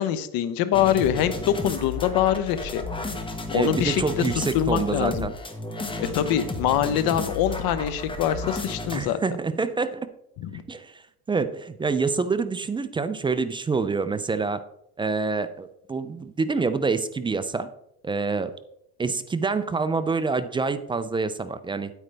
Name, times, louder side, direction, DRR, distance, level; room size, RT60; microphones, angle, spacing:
voice 1, 0.0-2.8 3.5-4.2 4.5-5.3 6.0-9.2 10.4-10.6, left 10 dB, 60° left, 12 dB, 1.0 m, -24 dB
sound 1, 0.7-9.0, left 3 dB, 10° left, 1.1 m, -33 dB
voice 2, 3.5-5.3 8.9-10.1 10.7-11.0 11.3-14.6 15.0-17.7 18.0-18.5 19.0-21.9, right 4 dB, 15° right, 11 dB, 0.3 m, -26 dB
9.2 x 9.1 x 3.3 m, 0.76 s
cardioid pair, 130°, 40 cm